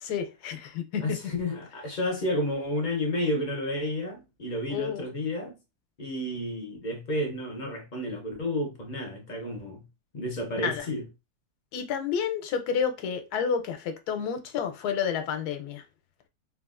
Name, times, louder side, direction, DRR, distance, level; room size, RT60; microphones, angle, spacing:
voice 1, 0.0-1.2 4.7-5.1 10.6-10.9 11.7-15.8, left 7 dB, 85° left, 1.1 m, -30 dB
voice 2, 1.0-5.5 6.0-9.8 10.1-11.1, left 1 dB, 55° left, 0.5 m, -31 dB
3.2 x 2.3 x 2.4 m
omnidirectional pair, 1.6 m